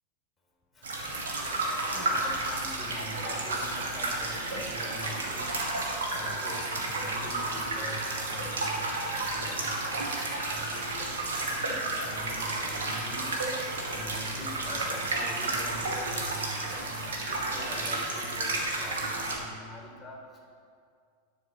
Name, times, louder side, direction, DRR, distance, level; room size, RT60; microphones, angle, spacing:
sound 1, 0.8-19.4, right 2 dB, 65° right, 1.4 m, -32 dB
voice 1, 1.9-5.6 6.1-10.0 10.5-13.3 13.9-20.6, equal, 5° left, 0 dB, 1.6 m, -44 dB
10.5 x 4.7 x 5.8 m, 2.2 s
figure-of-eight pair, 90°, 0 cm